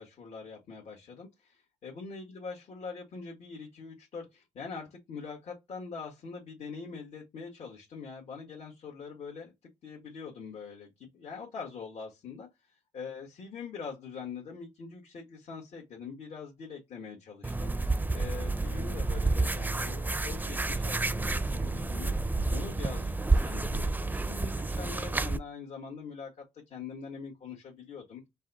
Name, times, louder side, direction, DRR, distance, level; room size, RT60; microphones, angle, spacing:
voice 1, 0.0-9.5 9.8-28.2, left 5 dB, 65° left, 1.7 m, -43 dB
sound 1, 17.4-25.4, right 3 dB, 15° right, 0.6 m, -30 dB
5.3 x 2.3 x 4.0 m
supercardioid pair, 60°, 12 cm